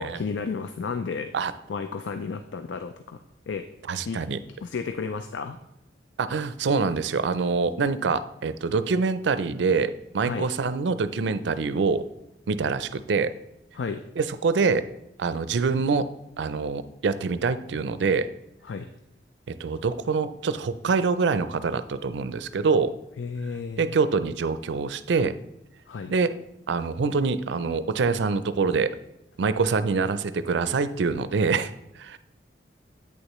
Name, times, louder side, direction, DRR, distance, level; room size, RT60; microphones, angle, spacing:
voice 1, 0.0-1.3 1.7-3.2 3.5-3.7 4.0-4.2 4.6-5.6 10.2-10.5 13.7-14.0 18.6-18.9 23.2-23.8 25.9-26.1, left 5 dB, 85° left, 9 dB, 0.4 m, -32 dB
voice 2, 3.9-4.4 6.2-12.0 12.5-13.3 14.2-14.8 15.2-16.1 16.4-18.3 19.5-22.9 23.8-25.3 26.1-26.4 26.7-29.0 29.4-32.2, right 4 dB, 75° right, 13 dB, 0.4 m, -25 dB
8.6 x 6.5 x 3.1 m, 0.84 s
head